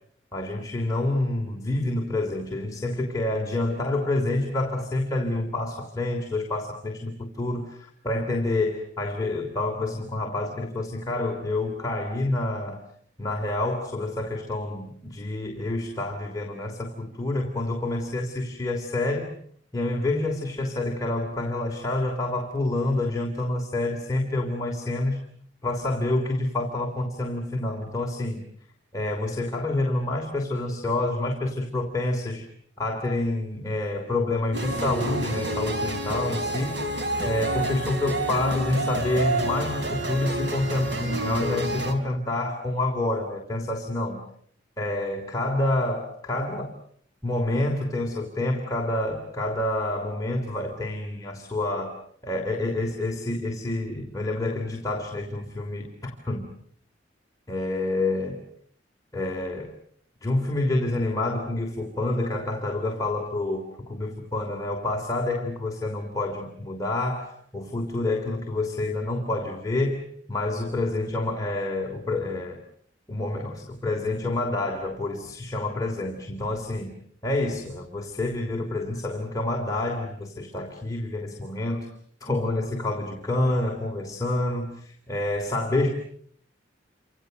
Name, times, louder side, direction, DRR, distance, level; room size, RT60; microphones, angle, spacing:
voice 1, 0.3-12.8 13.2-19.3 19.7-25.3 25.6-28.5 28.9-32.5 32.8-36.8 37.2-44.2 44.8-46.7 47.2-51.9 52.2-56.5 57.5-58.4 59.1-59.7 60.2-72.6 73.1-77.0 77.2-81.9 82.2-85.9, left 2 dB, 20° left, 1 dB, 3.1 m, -28 dB
sound 1, 34.5-41.9, right 1 dB, 65° right, 4.6 m, -29 dB
29.5 x 26.5 x 6.7 m, 0.63 s
head